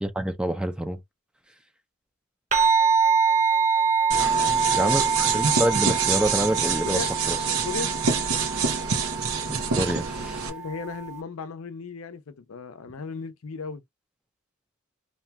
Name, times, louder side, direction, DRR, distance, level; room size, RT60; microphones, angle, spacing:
voice 1, 0.0-1.0 4.7-7.4 9.5-10.5, right 1 dB, 5° right, 0.4 m, -27 dB
sound 1, 2.5-11.2, right 5 dB, 35° right, 0.7 m, -25 dB
sound 2, 4.1-10.5, right 5 dB, 90° right, 0.7 m, -26 dB
voice 2, 4.3-5.0 6.8-7.1 7.4-7.9 10.5-13.8, left 5 dB, 80° left, 0.6 m, -36 dB
2.8 x 2.3 x 2.8 m
head